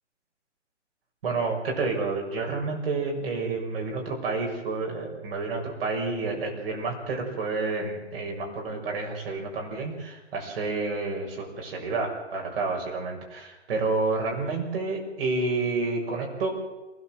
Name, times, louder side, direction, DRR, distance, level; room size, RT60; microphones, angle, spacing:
voice 1, 1.2-16.5, right 3 dB, 55° right, 0 dB, 6.6 m, -29 dB
28.0 x 15.0 x 7.7 m, 1.1 s
hypercardioid pair, 150°, 35 cm